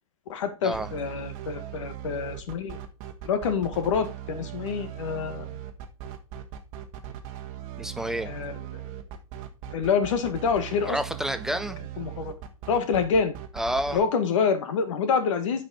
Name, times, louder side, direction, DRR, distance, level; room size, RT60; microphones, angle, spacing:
voice 1, 0.3-2.8 3.2-5.5 8.3-8.8 9.7-11.0 12.0-12.3 12.7-13.4 13.9-15.6, left 6 dB, 60° left, 1.8 m, -27 dB
sound 1, 0.7-14.0, right 11 dB, 35° right, 1.4 m, -39 dB
voice 2, 7.8-8.3 10.9-11.8 13.6-14.0, equal, 5° right, 0.4 m, -29 dB
8.7 x 5.3 x 4.2 m
hypercardioid pair, 145°, 18 cm